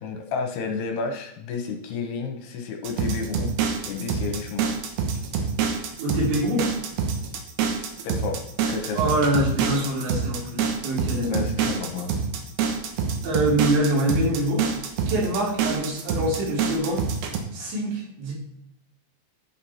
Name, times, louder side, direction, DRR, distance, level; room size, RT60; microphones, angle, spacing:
voice 1, 0.0-3.5 3.8-4.7 8.0-9.1 11.2-12.1, left 5 dB, 70° left, 3 dB, 3.0 m, -31 dB
sound 1, 2.8-17.4, right 6 dB, 70° right, 3.0 m, -26 dB
voice 2, 6.0-6.7 8.9-11.5 13.2-14.7 15.1-17.0 17.5-18.3, right 1 dB, 90° right, -4 dB, 5.4 m, -25 dB
11.0 x 6.2 x 4.3 m, 0.79 s
omnidirectional pair, 5.1 m